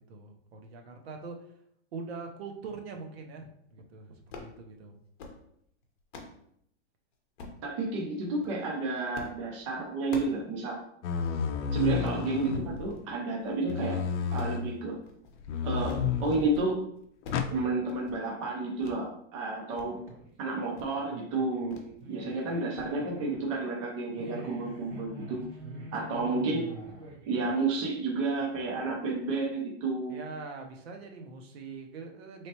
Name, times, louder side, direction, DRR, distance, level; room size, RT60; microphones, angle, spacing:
voice 1, 0.0-1.5 1.9-5.0 22.0-22.3 24.2-24.9 26.0-26.3 30.1-32.5, right 4 dB, 60° right, 3 dB, 0.7 m, -43 dB
sound 1, 4.3-4.6 5.0-5.4 5.8-6.4 7.4-7.6 8.3-8.6 9.1-9.4 9.7-10.5 10.8-10.9 11.2-11.4 11.9-12.2 12.8-13.1 13.4-13.8 14.2-15.4 15.7-16.1 16.4-16.7 17.0-17.5 17.8-18.2 18.8-19.0 19.4-19.9 20.2-20.3 20.7-21.0 21.7-21.9 22.2-22.4 22.8-22.9, left 3 dB, 45° left, 0.8 m, -46 dB
voice 2, 7.6-10.8 11.7-14.0 14.3-15.0 15.6-16.8 17.5-20.0 20.4-21.8 22.1-25.4 25.9-26.6 27.3-30.2, right 3 dB, 25° right, -1 dB, 0.5 m, -31 dB
sound 2, 11.0-12.9 13.7-14.7 15.4-16.5 17.3-17.5, left 6 dB, 75° left, 0.6 m, -31 dB
sound 3, 19.8-28.8, right 2 dB, 85° right, 1.7 m, -47 dB
4.2 x 3.3 x 2.8 m, 0.71 s
supercardioid pair, 175°, 35 cm